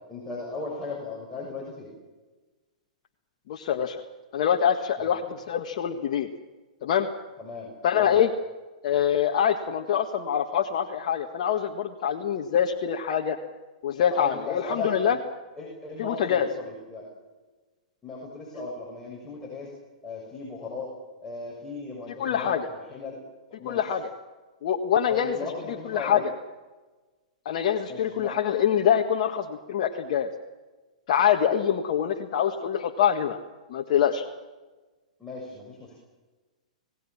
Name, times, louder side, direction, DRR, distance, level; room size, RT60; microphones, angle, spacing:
voice 1, 0.1-1.9 5.0-5.1 7.4-7.7 8.0-8.2 13.9-15.2 15.6-17.1 18.0-19.7 20.0-20.9 21.2-23.2 23.5-23.9 25.1-26.2 27.9-28.4 35.2-36.0, left 3 dB, 10° left, -4 dB, 6.5 m, -37 dB
voice 2, 3.5-4.0 4.3-6.3 6.8-7.1 7.8-8.3 8.8-13.4 13.8-15.2 16.0-16.5 22.2-22.7 23.6-24.0 24.6-25.4 25.9-26.2 27.4-30.3 31.1-33.4 33.7-34.2, left 9 dB, 55° left, 2 dB, 1.7 m, -24 dB
27.0 x 18.5 x 7.4 m, 1.3 s
hypercardioid pair, 115°, 4 cm